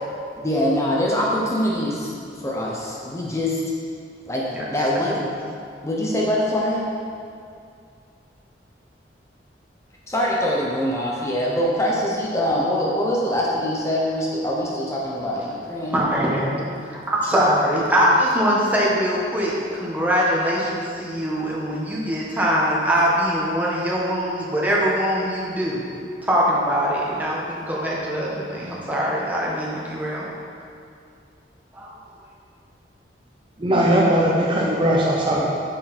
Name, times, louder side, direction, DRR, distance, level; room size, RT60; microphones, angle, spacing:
voice 1, 0.4-2.1 2.4-3.6 4.3-5.2 5.8-6.9 10.1-16.0 16.8-16.9 17.3-17.5, equal, 15° left, -4 dB, 0.9 m, -23 dB
voice 2, 15.8-16.6 16.9-25.8 26.2-30.3 31.7-31.9, equal, 10° right, -5 dB, 1.4 m, -22 dB
voice 3, 33.6-35.5, right 1 dB, 30° right, -3 dB, 0.7 m, -19 dB
8.6 x 6.7 x 4.3 m, 2.4 s
head